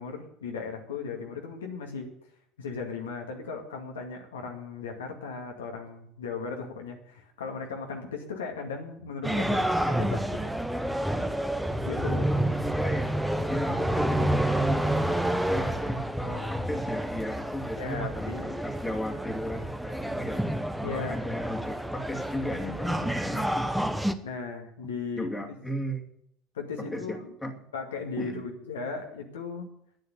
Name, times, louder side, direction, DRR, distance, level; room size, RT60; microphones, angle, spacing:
voice 1, 0.0-2.1 2.6-10.5 11.9-12.3 17.7-18.6 20.8-21.3 24.2-25.3 26.5-27.3 27.7-29.7, left 5 dB, 75° left, 1 dB, 2.1 m, -37 dB
sound 1, 9.2-24.1, right 1 dB, 5° right, 1.1 m, -29 dB
voice 2, 12.2-13.1 13.4-24.0 25.1-26.1 26.8-27.6 28.2-28.5, equal, 15° left, 3 dB, 2.4 m, -36 dB
11.0 x 9.6 x 8.2 m, 0.72 s
figure-of-eight pair, 65°, 0 cm